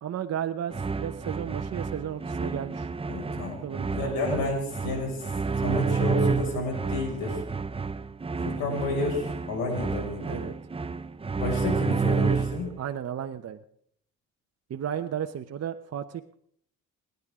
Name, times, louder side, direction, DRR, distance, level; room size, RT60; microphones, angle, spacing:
voice 1, 0.0-2.9 3.6-4.5 4.8-5.2 10.2-10.5 12.8-13.6 14.7-16.4, right 9 dB, 50° right, 7 dB, 0.9 m, -34 dB
sound 1, 0.7-12.7, right 5 dB, 15° right, 0.7 m, -30 dB
voice 2, 3.1-3.6 3.9-5.3 5.6-7.4 8.4-10.4 11.4-12.7, left 3 dB, 85° left, 1 dB, 5.9 m, -31 dB
29.5 x 10.5 x 3.7 m, 0.68 s
supercardioid pair, 65°, 33 cm